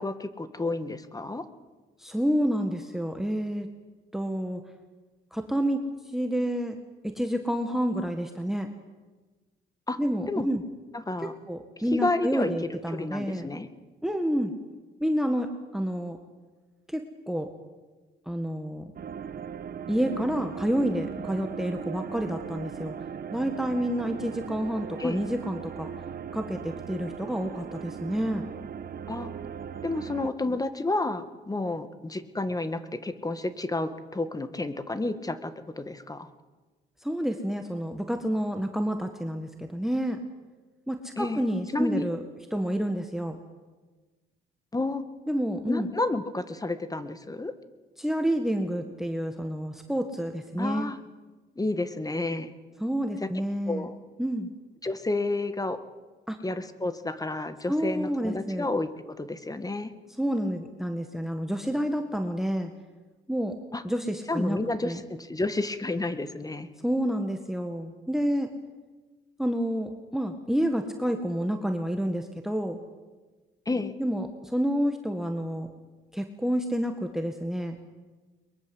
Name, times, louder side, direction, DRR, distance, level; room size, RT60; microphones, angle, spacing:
voice 1, 0.0-1.5 9.9-10.0 10.3-10.5 10.9-11.3 11.9-12.5 12.9-13.7 25.0-25.2 29.1-29.3 29.8-36.3 41.2-41.4 41.7-42.1 44.7-45.0 45.7-47.5 50.6-51.0 51.6-52.5 53.2-53.3 53.7-53.9 54.8-55.8 56.4-59.9 63.7-63.8 64.3-66.7 73.7-73.9, left 2 dB, 20° left, 11 dB, 1.9 m, -30 dB
voice 2, 2.0-3.7 4.1-4.6 5.3-5.8 6.1-6.8 7.0-8.7 10.0-10.6 11.5-13.5 14.0-14.5 15.0-16.2 16.9-17.5 18.3-18.9 19.9-22.9 23.3-25.9 26.3-28.4 37.0-40.2 40.9-42.2 42.5-43.4 45.3-45.9 48.0-50.9 52.8-53.9 54.2-54.5 56.3-56.4 57.7-58.7 60.2-62.7 63.3-63.6 63.8-64.6 64.8-65.0 66.8-68.5 69.4-72.8 74.0-75.7 76.1-77.8, equal, ahead, 6 dB, 1.8 m, -29 dB
sound 1, 19.0-30.3, right 7 dB, 50° right, 1.3 m, -38 dB
22.5 x 22.0 x 8.0 m, 1.3 s
cardioid pair, 90°, 20 cm